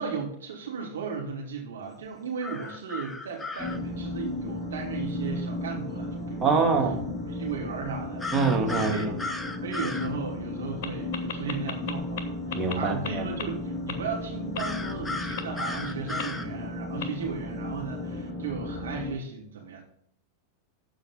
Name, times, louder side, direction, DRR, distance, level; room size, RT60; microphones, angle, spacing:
voice 1, 0.0-6.7 7.3-8.3 8.7-9.1 9.6-19.8, right 5 dB, 65° right, -1 dB, 3.0 m, -36 dB
sound 1, 2.4-3.8 8.2-10.1 14.6-16.5, left 3 dB, 10° left, 0.7 m, -35 dB
sound 2, 3.6-19.1, left 2 dB, 30° left, 2.6 m, -35 dB
voice 2, 6.4-7.0 8.3-9.1 12.5-13.2, right 4 dB, 20° right, 1 dB, 2.1 m, -24 dB
sound 3, 10.8-10.9 11.1-12.2 12.5-12.7 13.0-13.1 13.4-13.5 13.9-14.0 14.5-14.6 15.4-15.5 16.2-16.3 17.0-17.1, left 7 dB, 50° left, 1.1 m, -33 dB
13.5 x 5.2 x 4.1 m, 0.69 s
figure-of-eight pair, 90°, 0 cm